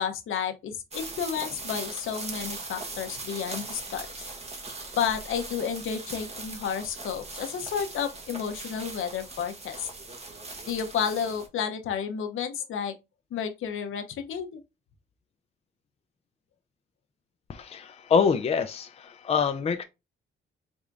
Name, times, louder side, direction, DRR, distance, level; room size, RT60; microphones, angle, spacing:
voice 1, 0.0-4.3 5.0-9.9 10.7-12.9 13.3-14.6, left 7 dB, 75° left, 0.9 m, -31 dB
sound 1, 0.9-11.5, right 3 dB, 30° right, 1.0 m, -40 dB
voice 2, 17.5-19.8, left 6 dB, 30° left, 0.5 m, -25 dB
4.8 x 3.6 x 2.6 m
cardioid pair, 120°, 21 cm